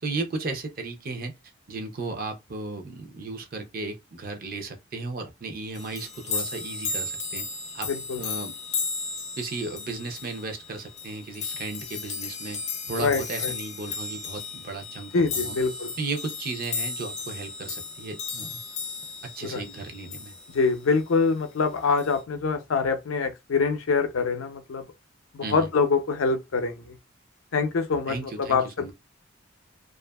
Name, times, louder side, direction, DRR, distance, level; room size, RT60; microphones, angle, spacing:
voice 1, 0.0-1.3 1.7-7.5 7.7-7.9 8.2-8.5 9.4-12.6 12.9-15.6 16.0-18.6 19.4-20.3 25.4-25.7 28.1-28.9, right 3 dB, 45° right, 0.5 m, -35 dB
sound 1, 5.7-20.8 22.0-22.2, left 4 dB, 35° left, 0.4 m, -35 dB
voice 2, 7.9-8.2 13.0-13.5 15.1-15.9 19.4-19.6 20.5-24.9 25.3-27.0 27.5-28.9, left 4 dB, 85° left, 0.5 m, -25 dB
2.6 x 2.4 x 2.2 m
head